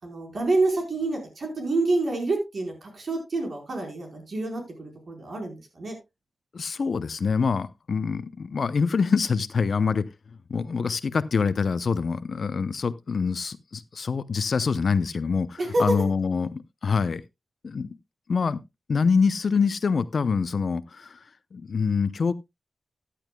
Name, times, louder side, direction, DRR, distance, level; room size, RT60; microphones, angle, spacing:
voice 1, 0.0-6.0 15.6-15.9, right 2 dB, 60° right, 4.4 m, -27 dB
voice 2, 6.5-10.1 10.5-17.2 17.6-17.9 18.3-18.6 18.9-21.2 21.5-22.3, left 5 dB, 65° left, 0.6 m, -25 dB
14.0 x 10.0 x 2.2 m
wide cardioid pair, 85°, 0 cm